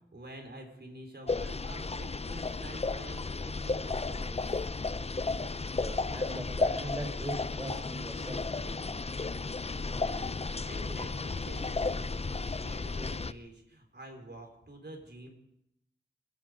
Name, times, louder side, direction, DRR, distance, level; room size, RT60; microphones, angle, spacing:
voice 1, 0.1-4.7 9.9-15.3, right 1 dB, 60° right, 2 dB, 4.5 m, -48 dB
sound 1, 1.3-13.3, left 3 dB, 30° left, 0.5 m, -33 dB
voice 2, 5.7-8.9, right 1 dB, 15° right, 4 dB, 4.5 m, -41 dB
26.0 x 10.5 x 5.2 m, 0.80 s
cardioid pair, 40°, 19 cm